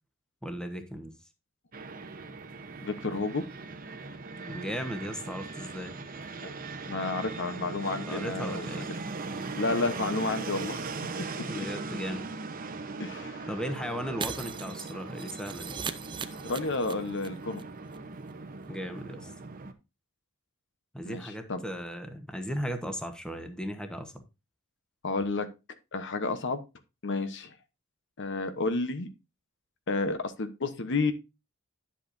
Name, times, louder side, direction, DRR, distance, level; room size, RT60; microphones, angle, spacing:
voice 1, 0.4-1.1 4.5-5.9 8.1-8.9 11.5-12.3 13.5-15.8 18.7-19.3 20.9-24.2, equal, 5° left, 7 dB, 1.1 m, -36 dB
Fixed-wing aircraft airplane, 1.7-19.7, right 3 dB, 40° right, 0.9 m, -39 dB
voice 2, 2.8-3.4 6.4-6.5 6.9-8.7 9.5-10.9 11.4-11.5 13.0-13.5 16.4-17.6 21.0-21.6 25.0-25.5 25.9-26.6 27.0-27.5 28.2-29.1 29.9-31.1, left 3 dB, 55° left, 10 dB, 1.0 m, -31 dB
Shatter, 14.2-17.3 17.5-17.6 17.9-18.0, right 6 dB, 20° right, 0.5 m, -38 dB
10.5 x 7.6 x 2.6 m, 0.26 s
head